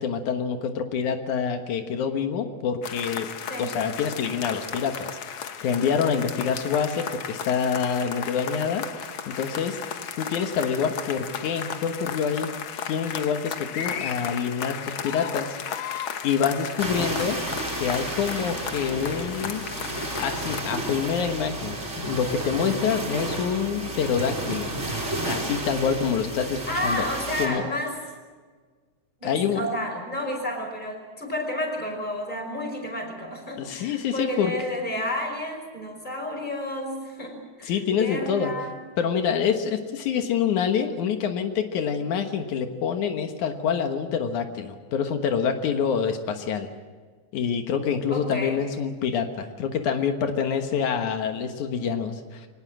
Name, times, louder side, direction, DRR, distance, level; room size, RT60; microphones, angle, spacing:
voice 1, 0.0-3.3 3.6-5.1 5.6-8.8 9.3-9.8 10.2-12.5 12.9-15.6 16.2-17.4 17.8-19.6 20.2-24.7 25.2-27.0 27.4-27.6 29.2-29.6 33.6-34.5 37.6-38.5 39.0-46.7 47.3-52.5, left 7 dB, 85° left, 6 dB, 2.8 m, -26 dB
sound 1, 2.8-20.6, left 7 dB, 55° left, 1.6 m, -35 dB
sound 2, 16.8-27.5, right 1 dB, 20° right, 4.5 m, -32 dB
voice 2, 26.7-28.0 29.2-38.8 48.1-48.6, left 1 dB, 15° left, 3 dB, 5.3 m, -31 dB
23.5 x 19.5 x 7.5 m, 1.5 s
omnidirectional pair, 3.4 m